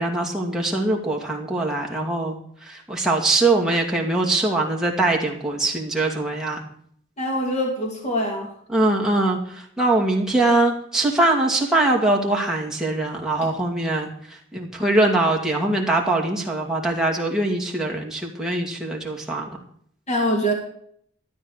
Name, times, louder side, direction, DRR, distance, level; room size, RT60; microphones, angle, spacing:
voice 1, 0.0-6.6 8.7-19.5, right 2 dB, 5° right, -2 dB, 2.3 m, -22 dB
voice 2, 7.2-8.5 13.4-13.5 20.1-20.5, equal, 35° left, 1 dB, 2.5 m, -24 dB
13.5 x 9.2 x 6.6 m, 0.65 s
head